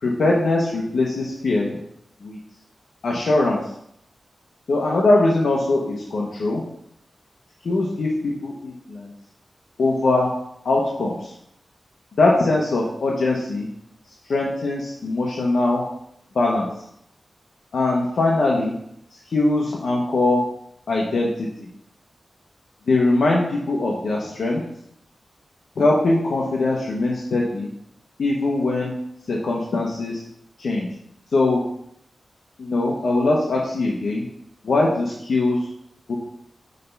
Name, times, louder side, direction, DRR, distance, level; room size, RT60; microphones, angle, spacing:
voice 1, 0.0-1.8 2.2-2.4 3.0-3.6 4.7-6.6 7.6-9.1 9.8-10.3 10.6-11.3 12.2-13.7 14.3-15.8 16.3-16.7 17.7-18.7 19.3-20.4 20.9-21.7 22.9-24.6 25.8-27.7 28.2-28.9 29.3-30.2 30.6-30.9 31.3-31.6 32.6-34.2 34.6-35.6 36.1-36.2, left 2 dB, 80° left, -2 dB, 1.0 m, -21 dB
6.6 x 3.4 x 5.4 m, 0.73 s
wide cardioid pair, 140°, 0 cm